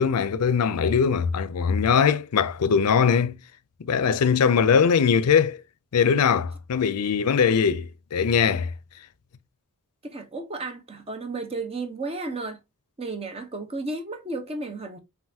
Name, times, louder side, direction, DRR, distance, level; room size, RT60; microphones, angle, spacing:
voice 1, 0.0-3.4 3.8-5.6 5.9-8.7, left 6 dB, 85° left, 0.5 m, -21 dB
voice 2, 10.0-12.6 13.0-15.0, right 3 dB, 25° right, 0.9 m, -33 dB
5.5 x 2.6 x 2.7 m
head